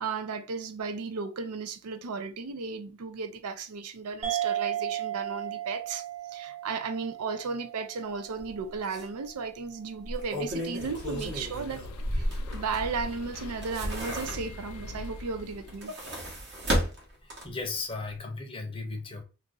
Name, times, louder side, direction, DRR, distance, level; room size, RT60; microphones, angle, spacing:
voice 1, 0.0-11.8 12.1-15.9, right 4 dB, 85° right, 0.5 m, -35 dB
sound 1, 4.2-9.1, right 12 dB, 25° right, 0.7 m, -35 dB
Opening and closing a window, 8.4-8.5 8.9-9.0 10.0-13.0 13.4-14.8 15.6-17.7 18.1-18.2, equal, 50° right, 1.1 m, -33 dB
sound 2, 10.8-15.9, left 2 dB, 90° left, 0.5 m, -42 dB
voice 2, 17.2-19.2, left 3 dB, 25° left, 0.6 m, -36 dB
2.7 x 2.6 x 3.7 m
head